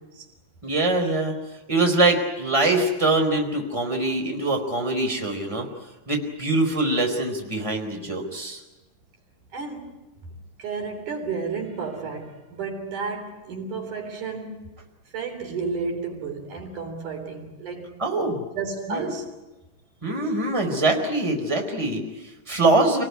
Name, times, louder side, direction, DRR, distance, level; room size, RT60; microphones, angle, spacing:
voice 1, 0.6-1.3 1.7-5.7 6.1-8.6 18.0-18.4 18.9-19.1 20.0-23.0, right 2 dB, 10° right, 4.1 m, -23 dB
voice 2, 9.5-14.7 15.1-18.0 18.5-19.3, right 4 dB, 70° right, 4.8 m, -32 dB
28.0 x 19.5 x 9.6 m
omnidirectional pair, 3.7 m